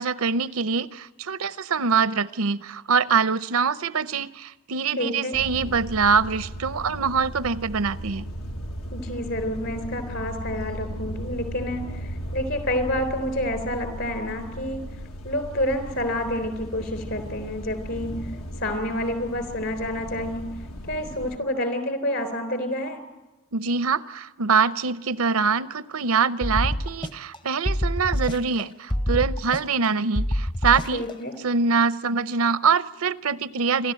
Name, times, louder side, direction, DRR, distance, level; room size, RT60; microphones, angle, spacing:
voice 1, 0.0-8.3 23.5-31.0 31.4-33.9, right 5 dB, 85° right, 0.7 m, -24 dB
voice 2, 4.9-5.4 8.9-14.8 15.2-20.6 20.9-23.0 30.9-31.3, left 1 dB, 55° left, 3.7 m, -29 dB
sound 1, 5.3-21.4, equal, 85° left, 1.7 m, -36 dB
sound 2, 26.4-27.4 27.7-28.6 28.9-29.9 30.2-31.1, equal, 20° left, 0.7 m, -26 dB
29.0 x 12.0 x 9.0 m
head